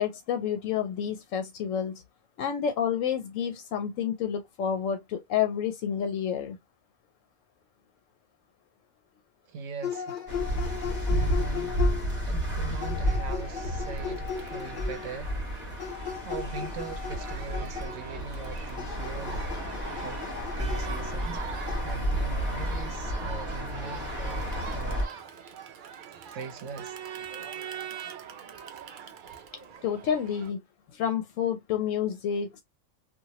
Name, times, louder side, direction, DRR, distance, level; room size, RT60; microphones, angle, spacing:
voice 1, 0.0-2.0 2.4-6.6 29.8-30.6 30.9-32.6, left 8 dB, 85° left, 1.0 m, -29 dB
voice 2, 9.5-10.6 11.1-11.8 12.3-15.4 16.2-19.6 20.0-25.0 26.3-27.0, right 5 dB, 75° right, 0.9 m, -41 dB
sound 1, 9.8-12.3 12.8-15.2 15.8-18.2 18.8-21.3 21.7-21.8, left 8 dB, 55° left, 0.6 m, -37 dB
sound 2, 10.3-25.1, equal, 25° right, 1.4 m, -31 dB
Crowd, 13.4-30.5, right 8 dB, 60° right, 0.5 m, -43 dB
2.9 x 2.5 x 2.8 m
omnidirectional pair, 1.3 m